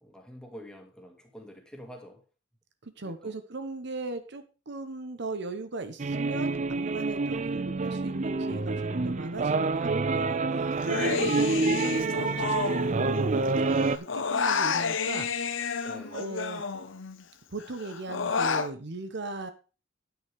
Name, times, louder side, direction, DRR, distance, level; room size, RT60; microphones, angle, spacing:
voice 1, 0.0-2.2 3.0-3.4 15.8-16.2, equal, 5° left, 2.1 m, -46 dB
voice 2, 2.8-15.3 15.6-15.8 16.1-16.6 17.5-19.5, right 2 dB, 65° right, 1.0 m, -38 dB
sound 1, 6.0-14.0, right 3 dB, 40° right, 0.5 m, -27 dB
Human voice, 10.8-13.5 13.7-17.2 17.6-18.7, left 5 dB, 80° left, 0.9 m, -30 dB
9.4 x 9.4 x 3.6 m
head